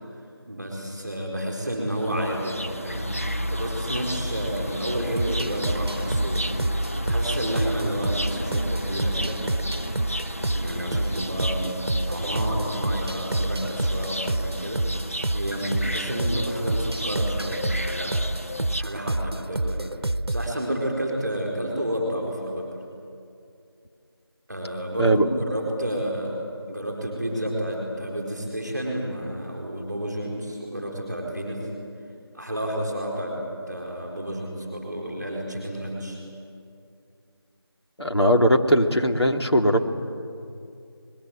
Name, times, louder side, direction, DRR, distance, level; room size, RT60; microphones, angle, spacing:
voice 1, 0.4-3.2 3.4-6.5 7.1-9.4 10.5-14.8 15.3-18.3 18.7-19.9 20.3-22.7 24.5-26.4 26.7-31.7 32.3-36.2, equal, ahead, -7 dB, 3.5 m, -30 dB
sound 1, 1.9-18.8, equal, 35° left, 0.7 m, -32 dB
sound 2, 5.2-20.5, right 1 dB, 70° right, 0.9 m, -28 dB
voice 2, 38.0-39.9, equal, 90° left, 3 dB, 2.8 m, -20 dB
27.5 x 21.0 x 9.1 m, 2.5 s
figure-of-eight pair, 175°, 13 cm